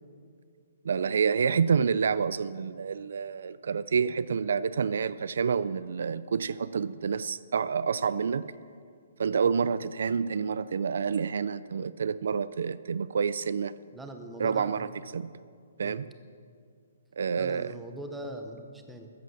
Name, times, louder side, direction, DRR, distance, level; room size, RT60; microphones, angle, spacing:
voice 1, 0.8-8.5 9.2-13.7 14.4-14.9 15.1-15.3 15.8-16.1 17.2-17.7, right 6 dB, 65° right, 16 dB, 0.3 m, -28 dB
voice 2, 13.9-14.9 15.8-16.0 17.3-19.1, right 1 dB, 5° right, 4 dB, 0.7 m, -42 dB
14.0 x 7.6 x 7.1 m, 2.2 s
hypercardioid pair, 175°, 0 cm